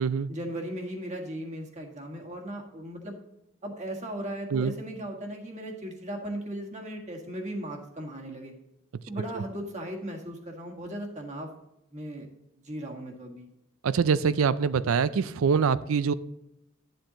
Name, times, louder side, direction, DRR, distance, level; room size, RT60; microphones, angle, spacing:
voice 1, 0.3-3.2 3.6-8.5 9.1-11.5 11.9-12.3 12.6-13.5, right 1 dB, 35° right, 1 dB, 1.6 m, -37 dB
voice 2, 13.8-16.1, right 6 dB, 85° right, 16 dB, 0.4 m, -24 dB
11.0 x 7.7 x 2.9 m, 0.87 s
head